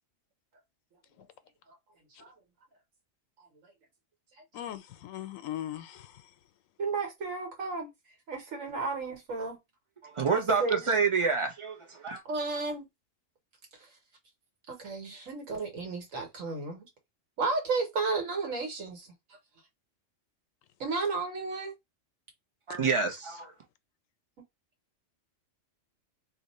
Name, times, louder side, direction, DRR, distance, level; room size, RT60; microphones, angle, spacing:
voice 1, 4.5-6.3, left 12 dB, 85° left, 1.0 m, -40 dB
voice 2, 6.8-7.9 8.3-9.6 10.3-10.8 12.2-12.9 13.7-13.9 14.7-16.9 17.4-19.4 20.8-21.7, right 3 dB, 90° right, 1.5 m, -33 dB
voice 3, 10.0-12.2 22.7-23.5, right 5 dB, 40° right, 0.4 m, -28 dB
2.8 x 2.1 x 4.0 m
omnidirectional pair, 1.3 m